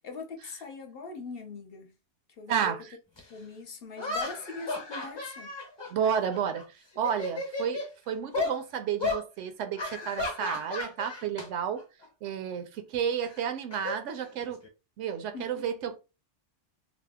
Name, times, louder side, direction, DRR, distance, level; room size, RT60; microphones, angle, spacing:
voice 1, 0.0-1.9 2.4-2.7 3.3-5.5 15.3-15.6, left 4 dB, 60° left, 0.7 m, -42 dB
voice 2, 2.5-3.0 5.9-11.8 12.2-14.6 15.0-16.0, right 8 dB, 80° right, 0.9 m, -31 dB
sound 1, 3.2-3.3 4.0-6.6 6.9-7.9 8.3-8.6 9.0-9.2 9.8-11.5 11.8-12.1 13.2-14.7, left 3 dB, 25° left, 0.7 m, -34 dB
2.7 x 2.0 x 3.4 m
omnidirectional pair, 1.2 m